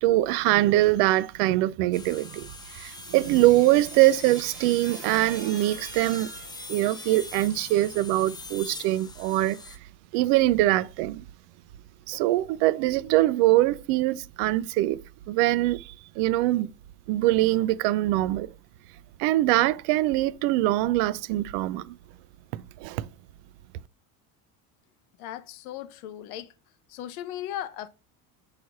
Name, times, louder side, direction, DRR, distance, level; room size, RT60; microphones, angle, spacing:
voice 1, 0.0-9.6 10.1-11.3 12.1-15.0 15.3-16.7 17.1-18.5 19.2-22.0 22.5-23.1, right 16 dB, 65° right, 0.5 m, -23 dB
sound 1, 1.9-9.8, left 3 dB, 10° left, 0.4 m, -42 dB
voice 2, 25.2-26.5 26.9-27.9, left 12 dB, 80° left, 0.7 m, -37 dB
4.8 x 4.4 x 5.7 m
hypercardioid pair, 80°, 43 cm